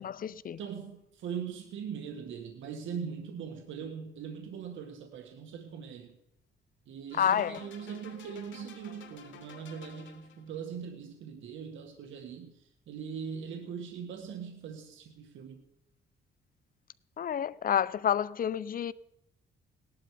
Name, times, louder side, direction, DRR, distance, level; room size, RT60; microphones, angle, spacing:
voice 1, 0.0-0.6 7.2-7.6 17.2-18.9, left 9 dB, 45° left, 0.6 m, -29 dB
voice 2, 0.6-6.1 6.9-15.6, right 7 dB, 75° right, 1.8 m, -41 dB
sound 1, 7.1-10.6, left 7 dB, 70° left, 2.7 m, -51 dB
18.5 x 11.5 x 5.1 m
cardioid pair, 90°, 20 cm